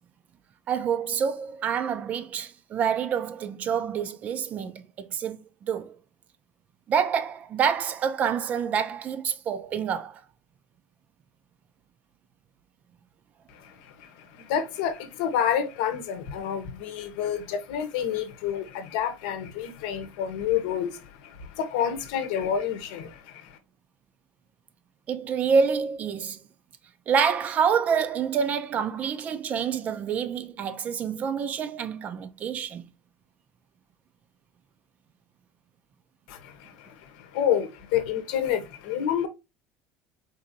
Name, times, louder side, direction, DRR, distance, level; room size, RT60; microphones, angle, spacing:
voice 1, 0.7-6.0 6.9-10.2 25.1-26.4 27.1-32.9, right 7 dB, 30° right, 0.4 m, -27 dB
voice 2, 13.5-23.6 36.3-39.3, left 9 dB, 85° left, 0.8 m, -29 dB
3.9 x 2.6 x 2.7 m
cardioid pair, 155°, 5 cm